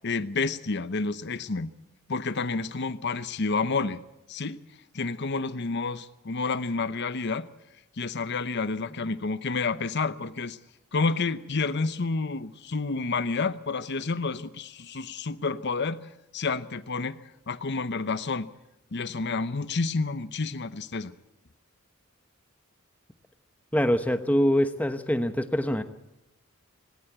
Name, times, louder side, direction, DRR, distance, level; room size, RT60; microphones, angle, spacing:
voice 1, 0.0-1.7 2.1-4.0 4.3-4.6 4.9-7.5 8.0-10.6 10.9-18.5 18.9-21.1, left 4 dB, 55° left, 14 dB, 0.8 m, -29 dB
voice 2, 23.7-25.8, equal, 5° left, 9 dB, 1.0 m, -24 dB
19.0 x 18.0 x 8.1 m, 0.90 s
head